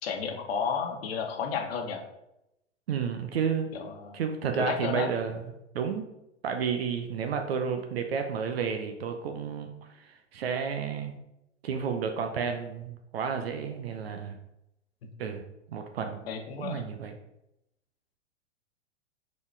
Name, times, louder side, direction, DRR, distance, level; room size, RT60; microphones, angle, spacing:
voice 1, 0.0-2.0 3.7-4.2 4.6-5.1 16.3-16.9, left 6 dB, 55° left, 4 dB, 1.2 m, -32 dB
voice 2, 2.9-3.8 4.1-6.0 6.4-9.7 10.0-11.2 11.6-14.4 15.2-15.4 15.7-16.3 16.6-17.1, right 6 dB, 55° right, 5 dB, 0.8 m, -31 dB
7.0 x 4.2 x 3.3 m, 0.86 s
figure-of-eight pair, 105°, 36 cm